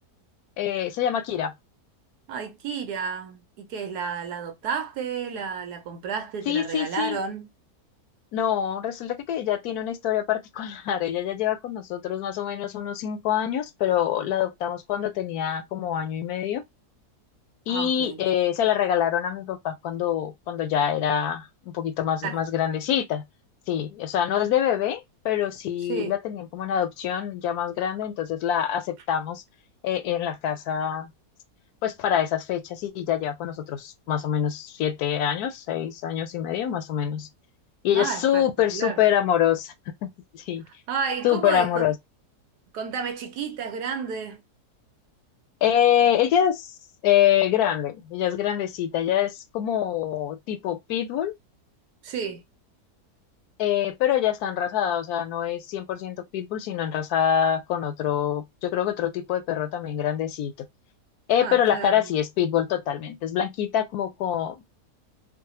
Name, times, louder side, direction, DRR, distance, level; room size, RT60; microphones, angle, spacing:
voice 1, 0.6-1.5 6.5-7.2 8.3-16.6 17.7-23.2 23.7-29.4 29.8-31.1 31.8-37.3 37.8-39.7 40.0-40.1 40.3-40.6 41.2-41.9 45.6-46.7 47.0-51.3 53.6-60.5 61.3-64.7, left 10 dB, 80° left, 1.1 m, -25 dB
voice 2, 2.3-7.5 17.7-18.2 22.2-22.4 25.9-26.2 37.9-39.0 40.9-41.8 42.7-44.4 52.0-52.4 61.4-62.1, right 6 dB, 85° right, 1.3 m, -31 dB
3.9 x 2.1 x 2.8 m
omnidirectional pair, 1.7 m